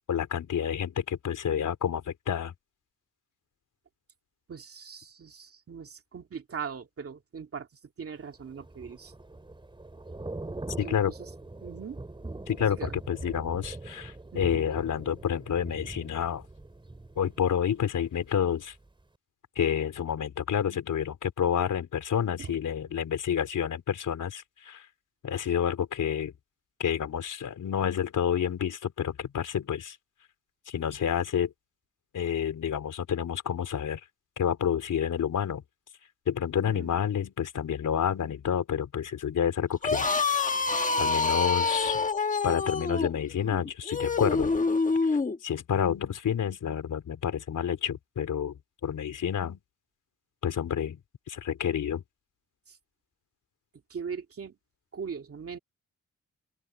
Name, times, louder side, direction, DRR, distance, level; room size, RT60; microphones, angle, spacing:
voice 1, 0.1-2.5 10.8-11.1 12.5-16.4 17.2-18.7 19.6-24.9 25.2-26.3 26.8-30.0 30.7-31.5 32.1-34.0 34.4-35.6 36.3-40.1 41.0-42.0 42.4-44.6 45.0-45.1 45.4-48.5 48.8-49.6 50.4-51.0 51.3-52.0, left 8 dB, 90° left, 4.1 m, -29 dB
voice 2, 4.5-7.7 8.0-9.1 10.8-11.3 11.6-12.0 12.8-13.0 14.3-14.6 22.4-22.5 36.6-36.9 52.7-52.8 53.9-54.6 54.9-55.6, right 6 dB, 50° right, 2.5 m, -40 dB
Thunder / Rain, 8.3-18.3 18.6-18.9, right 2 dB, 15° right, 4.1 m, -42 dB
sound 1, 39.7-45.4, left 4 dB, 25° left, 1.1 m, -27 dB
open air
wide cardioid pair, 140°, 30 cm